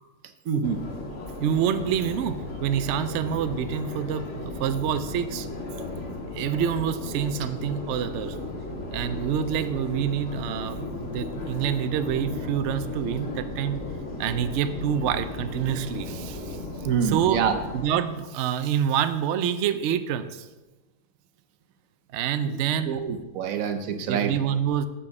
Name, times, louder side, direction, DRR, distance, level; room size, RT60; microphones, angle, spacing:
voice 1, 0.5-0.8 16.8-17.5 22.4-22.6 22.9-24.3, right 7 dB, 60° right, 8 dB, 1.1 m, -26 dB
Subway metro underground, 0.6-18.0, left 2 dB, 45° left, 1.5 m, -35 dB
voice 2, 1.4-5.5 6.3-8.4 8.9-13.8 14.2-17.4 17.7-20.5 22.1-23.0 24.1-24.8, right 9 dB, 85° right, 11 dB, 0.6 m, -27 dB
7.7 x 7.2 x 4.7 m, 1.1 s
omnidirectional pair, 1.8 m